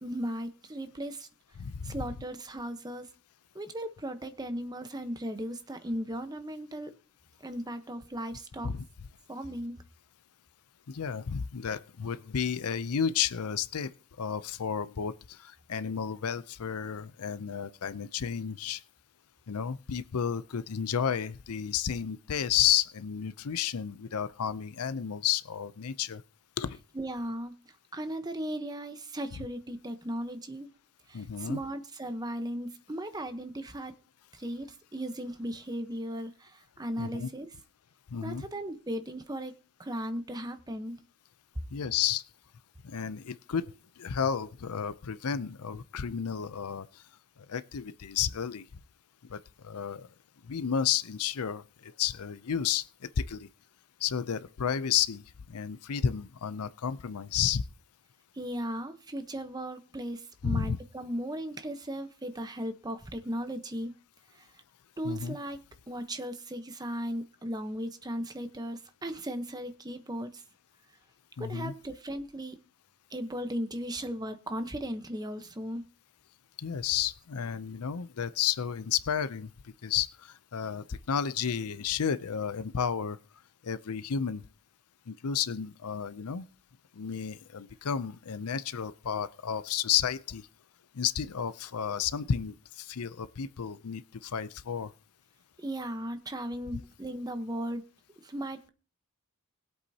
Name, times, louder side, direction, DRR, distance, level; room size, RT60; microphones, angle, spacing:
voice 1, 0.0-1.3 1.8-3.1 3.5-6.9 7.4-8.7 9.3-9.8 26.9-27.5 27.9-30.7 31.1-33.9 34.3-37.5 38.2-39.5 39.8-41.0 58.3-63.9 64.3-64.5 65.0-65.6 65.9-70.4 71.4-72.6 73.1-75.8 95.6-97.8 98.2-98.7, equal, 20° right, 8 dB, 1.0 m, -36 dB
voice 2, 1.6-2.0 8.6-8.8 10.9-13.9 14.2-18.8 19.5-26.2 26.6-26.8 31.1-31.6 37.0-37.3 38.1-38.5 41.7-42.2 42.8-47.0 47.5-48.6 49.2-50.1 50.4-53.5 54.0-57.6 60.4-60.8 65.0-65.4 71.4-71.7 76.6-79.5 79.8-83.2 83.6-84.4 85.1-86.5 86.9-90.4 90.9-94.9, left 8 dB, 80° left, 16 dB, 0.6 m, -32 dB
21.0 x 8.1 x 2.8 m, 0.36 s
head